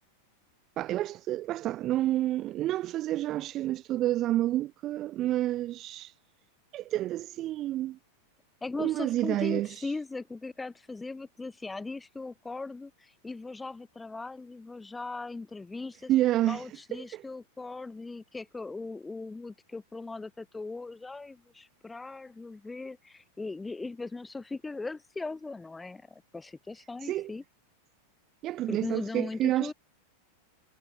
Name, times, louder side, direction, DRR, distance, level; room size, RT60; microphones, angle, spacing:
voice 1, 0.8-6.1 6.7-8.0 8.8-9.7 16.1-16.6 17.0-17.2 27.0-27.3 28.4-29.7, right 14 dB, 35° right, 0.7 m, -29 dB
voice 2, 8.6-16.1 16.5-27.4 28.7-29.7, left 3 dB, 10° left, 2.2 m, -39 dB
figure-of-eight pair, 90°, 0 cm